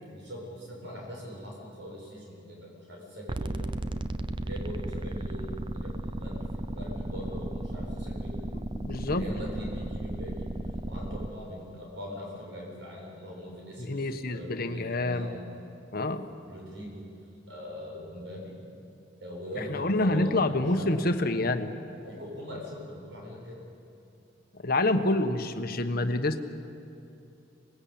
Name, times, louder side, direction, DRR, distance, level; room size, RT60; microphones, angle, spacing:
voice 1, 0.1-3.7 4.4-8.4 9.2-10.5 10.9-15.4 16.4-17.1 17.5-18.6 19.2-21.2 22.0-23.6, equal, 65° right, -2 dB, 7.5 m, -41 dB
sound 1, 3.3-11.3, right 1 dB, 25° right, 0.6 m, -35 dB
voice 2, 8.8-9.3 13.8-15.4 15.9-16.3 19.6-21.7 24.5-26.4, left 2 dB, 50° left, 8 dB, 1.2 m, -27 dB
26.0 x 20.0 x 8.6 m, 2.6 s
head